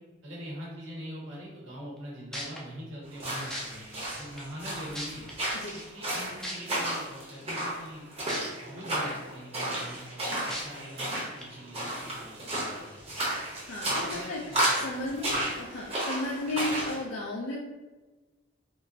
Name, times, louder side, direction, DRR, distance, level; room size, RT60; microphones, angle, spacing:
voice 1, 0.2-5.3 5.7-8.0 8.4-13.4 14.0-15.4, equal, 75° right, -5 dB, 1.2 m, -43 dB
sound 1, 2.0-2.1 2.3-2.6 3.5-3.6 4.4-4.5 4.9-5.3 6.4-6.5 8.3-8.4 8.9-9.0 10.5-10.6 11.4-11.5, equal, 5° left, 0.4 m, -36 dB
sound 2, 3.1-17.0, right 1 dB, 30° right, 0.9 m, -33 dB
voice 2, 13.5-14.4 14.7-17.6, left 2 dB, 65° left, -4 dB, 0.4 m, -34 dB
3.6 x 2.5 x 2.6 m, 1.2 s
head